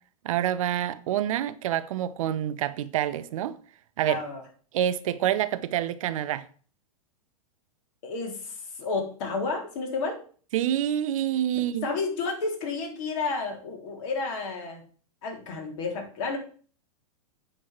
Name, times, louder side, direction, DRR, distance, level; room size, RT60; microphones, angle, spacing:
voice 1, 0.2-3.6 4.0-4.2 4.7-6.5 10.5-11.9, right 11 dB, 65° right, 0.9 m, -27 dB
voice 2, 4.0-4.4 8.0-10.2 11.8-14.8 15.2-16.4, left 4 dB, 55° left, 3.8 m, -31 dB
8.8 x 4.5 x 7.5 m
hypercardioid pair, 115°, 19 cm